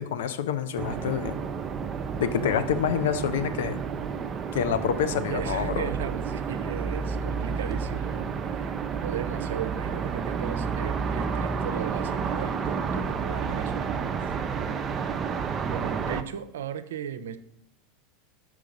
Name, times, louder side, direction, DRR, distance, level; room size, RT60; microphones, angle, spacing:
voice 1, 0.0-1.4 2.2-3.8 4.5-5.9, left 8 dB, 75° left, 11 dB, 0.6 m, -27 dB
Building Rooftops Ambient, 0.8-16.2, right 6 dB, 30° right, 0.5 m, -30 dB
voice 2, 5.3-14.4 15.7-17.4, right 8 dB, 80° right, 12 dB, 0.5 m, -37 dB
5.8 x 4.7 x 5.2 m, 0.79 s
hypercardioid pair, 95°, 0 cm